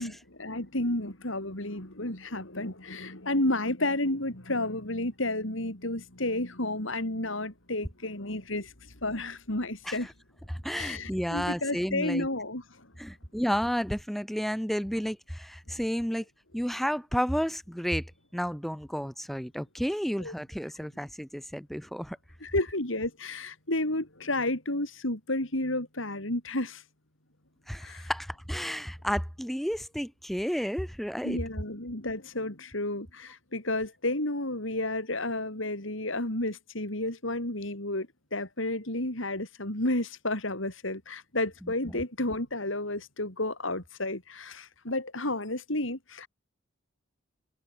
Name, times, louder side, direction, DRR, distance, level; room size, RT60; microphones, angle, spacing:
voice 1, 0.0-8.7 9.0-10.1 10.8-12.9 20.2-20.3 22.4-26.8 27.8-28.1 31.2-46.3, left 1 dB, 75° left, 5.0 m, -31 dB
voice 2, 10.5-12.3 13.0-16.2 16.5-18.1 18.3-22.2 27.7-31.4 41.6-42.0, equal, ahead, 1.2 m, -32 dB
head